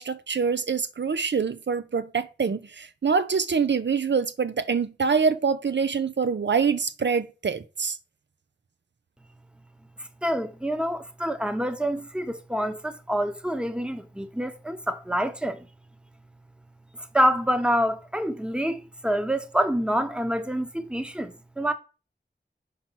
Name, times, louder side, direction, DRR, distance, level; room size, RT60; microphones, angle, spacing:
voice 1, 0.0-8.0, right 5 dB, 80° right, 0.6 m, -25 dB
voice 2, 10.2-15.7 17.0-21.7, equal, 5° right, 0.9 m, -27 dB
5.8 x 4.6 x 5.7 m
wide cardioid pair, 55°, 18 cm